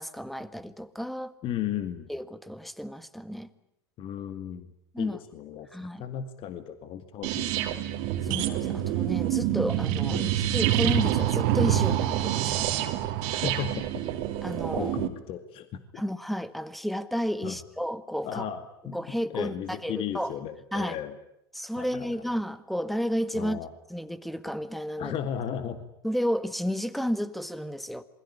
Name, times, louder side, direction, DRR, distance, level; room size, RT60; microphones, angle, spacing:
voice 1, 0.0-1.3 2.1-3.5 4.9-5.2 5.7-6.0 8.2-12.7 14.4-14.9 15.9-18.4 18.9-20.3 20.7-21.0 21.5-23.6 23.9-25.2 26.0-28.0, equal, ahead, 14 dB, 1.7 m, -32 dB
voice 2, 1.4-2.1 4.0-4.7 5.0-5.7 6.0-7.8 10.1-10.4 13.3-14.0 14.8-16.0 17.4-17.6 18.2-19.0 19.3-21.2 21.8-22.1 23.3-23.7 25.0-25.8, left 9 dB, 45° left, 10 dB, 2.2 m, -35 dB
sound 1, 7.2-15.1, right 12 dB, 55° right, 2.9 m, -27 dB
27.5 x 22.0 x 9.8 m, 0.78 s
hypercardioid pair, 100°, 13 cm